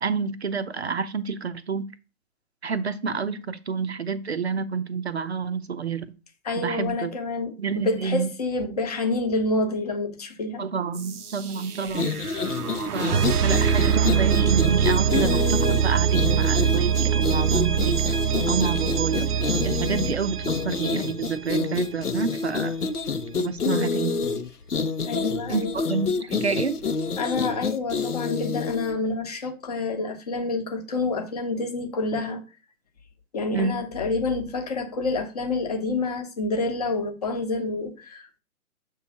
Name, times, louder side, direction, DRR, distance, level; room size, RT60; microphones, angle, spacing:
voice 1, 0.0-1.9 2.6-6.1 6.6-7.1 7.6-8.3 10.6-12.1 12.9-18.2 18.5-19.4 19.6-22.8 23.4-24.2 25.5-26.8 33.5-33.8, right 5 dB, 45° right, 0.6 m, -28 dB
voice 2, 6.4-10.6 25.1-25.8 27.2-32.4 33.3-38.4, left 3 dB, 25° left, 0.9 m, -28 dB
sound 1, 10.9-21.8, right 8 dB, 85° right, 0.7 m, -24 dB
sound 2, 11.9-28.9, left 4 dB, 85° left, 0.9 m, -28 dB
7.1 x 3.1 x 5.7 m
figure-of-eight pair, 145°, 44 cm